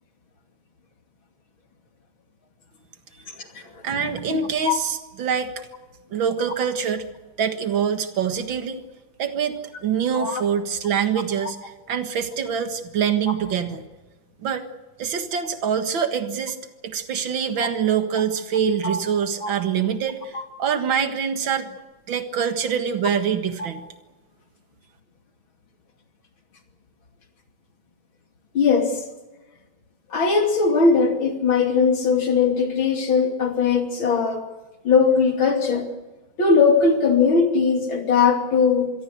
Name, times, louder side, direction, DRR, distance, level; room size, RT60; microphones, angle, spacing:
voice 1, 3.8-5.5 6.1-7.0 7.4-8.8 9.2-13.8 14.4-14.6 15.0-16.6 16.8-21.7 22.1-23.8, right 7 dB, 75° right, 7 dB, 2.4 m, -25 dB
voice 2, 28.6-29.0 30.1-34.5 34.8-35.9 36.4-38.9, left 5 dB, 90° left, 3 dB, 3.5 m, -20 dB
27.0 x 22.5 x 6.6 m, 1.1 s
omnidirectional pair, 2.1 m